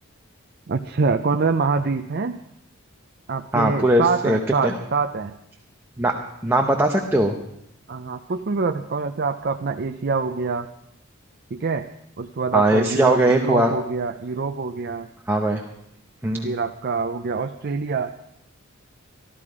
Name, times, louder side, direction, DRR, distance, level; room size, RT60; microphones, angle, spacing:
voice 1, 0.7-2.4 3.3-5.3 7.9-10.7 11.5-11.9 12.2-15.1 16.4-18.1, right 4 dB, 50° right, 7 dB, 0.5 m, -25 dB
voice 2, 3.5-4.7 6.0-6.2 6.4-7.3 12.5-13.7 15.3-15.6 16.2-16.5, right 1 dB, 10° right, 1 dB, 0.8 m, -20 dB
14.0 x 12.5 x 4.9 m, 0.78 s
head